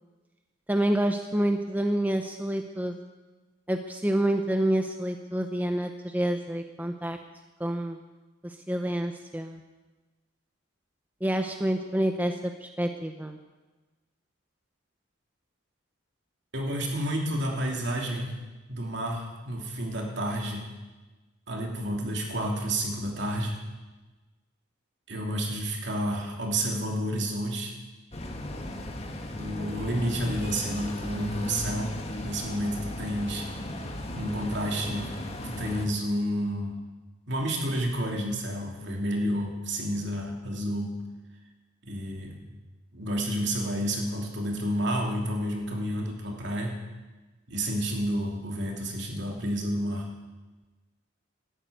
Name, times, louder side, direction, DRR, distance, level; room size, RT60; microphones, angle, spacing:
voice 1, 0.7-3.0 3.7-7.2 7.6-8.0 8.4-9.6 11.2-13.4, right 1 dB, 10° right, 5 dB, 0.6 m, -28 dB
voice 2, 16.5-18.3 18.7-20.7 21.5-23.6 25.1-27.7 29.4-33.5 34.1-35.2 35.4-36.8 37.3-41.0 41.8-42.4 42.9-46.7 47.5-50.1, equal, 55° right, 0 dB, 3.0 m, -30 dB
sound 1, 28.1-35.9, left 1 dB, 30° left, 1.6 m, -36 dB
13.0 x 11.0 x 9.2 m, 1.2 s
head